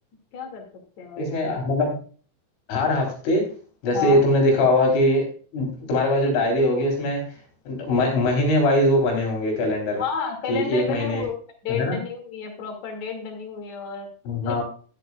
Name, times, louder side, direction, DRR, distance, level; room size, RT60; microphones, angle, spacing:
voice 1, 0.3-0.6 1.0-1.6 3.9-4.2 9.9-11.3 11.6-14.1 14.4-14.6, left 6 dB, 45° left, 3 dB, 2.9 m, -31 dB
voice 2, 1.2-1.9 2.7-3.4 3.8-5.2 5.5-7.2 7.7-10.0 10.5-11.3 11.8-12.0 14.3-14.6, left 1 dB, 80° left, 1 dB, 6.2 m, -21 dB
13.5 x 12.0 x 2.4 m, 0.41 s
omnidirectional pair, 5.6 m